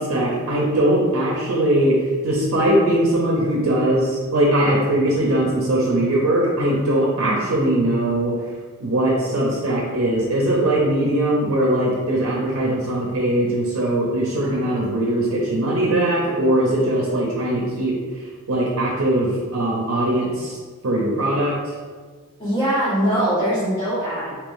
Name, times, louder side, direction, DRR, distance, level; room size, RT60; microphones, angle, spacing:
voice 1, 0.0-2.0 2.2-8.3 8.8-20.6 20.8-21.7, right 1 dB, 65° right, -4 dB, 0.6 m, -20 dB
voice 2, 7.1-7.5 22.4-24.4, equal, 35° left, -12 dB, 1.5 m, -22 dB
3.4 x 2.9 x 2.6 m, 1.5 s
head